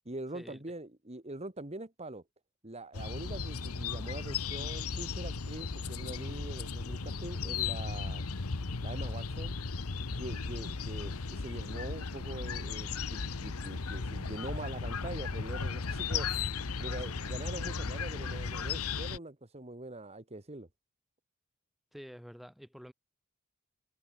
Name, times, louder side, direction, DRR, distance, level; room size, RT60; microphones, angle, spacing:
voice 1, 0.1-2.2 2.6-8.3 8.8-9.5 10.2-16.5 16.8-20.7, right 2 dB, 30° right, 1.9 m, -43 dB
sound 1, 2.9-19.2, left 5 dB, 85° left, 1.1 m, -36 dB
voice 2, 21.9-22.9, equal, ahead, 5.2 m, -48 dB
head